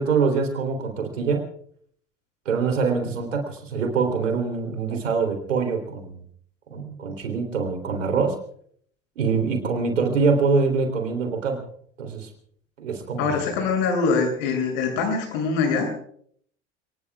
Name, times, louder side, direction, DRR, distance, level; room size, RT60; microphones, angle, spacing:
voice 1, 0.0-1.4 2.4-6.2 6.7-8.3 9.1-11.6 12.0-12.3 12.8-13.5, right 4 dB, 75° right, 4 dB, 3.5 m, -24 dB
voice 2, 13.2-15.9, left 4 dB, 55° left, 2 dB, 7.7 m, -23 dB
29.0 x 20.0 x 2.4 m, 0.63 s
figure-of-eight pair, 75°, 38 cm